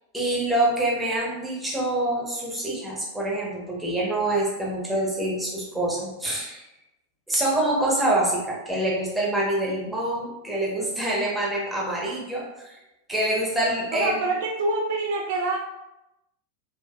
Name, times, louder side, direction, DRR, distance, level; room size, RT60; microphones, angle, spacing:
voice 1, 0.1-6.6 7.3-12.8 13.1-14.2, right 1 dB, 5° right, -4 dB, 0.9 m, -26 dB
voice 2, 13.9-15.6, right 2 dB, 55° right, 1 dB, 0.3 m, -26 dB
3.5 x 2.4 x 2.2 m, 0.92 s
figure-of-eight pair, 90°, 0 cm